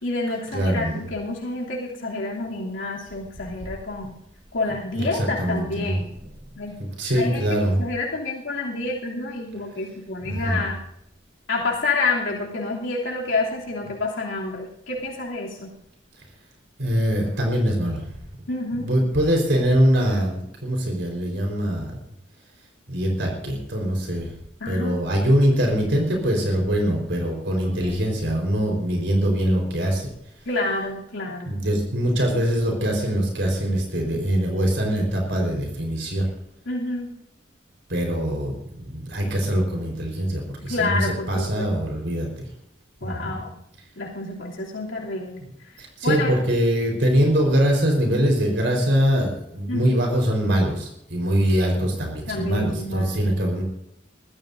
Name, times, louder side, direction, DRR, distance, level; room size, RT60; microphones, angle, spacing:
voice 1, 0.0-4.1 4.5-6.1 6.6-6.8 7.1-10.8 11.5-15.7 18.5-18.9 24.6-25.0 27.8-28.0 30.4-31.5 36.7-37.1 40.7-41.7 43.0-43.6 44.0-45.5 46.0-46.3 49.7-50.0 52.3-53.2, left 3 dB, 90° left, -3 dB, 3.1 m, -28 dB
voice 2, 0.5-1.0 4.9-6.0 6.8-7.8 10.2-10.7 16.8-18.2 18.8-22.0 22.9-24.3 24.7-30.1 31.4-36.3 37.9-42.3 43.0-43.3 45.8-53.6, equal, 65° right, 1 dB, 4.6 m, -23 dB
23.0 x 14.5 x 2.7 m, 0.78 s
head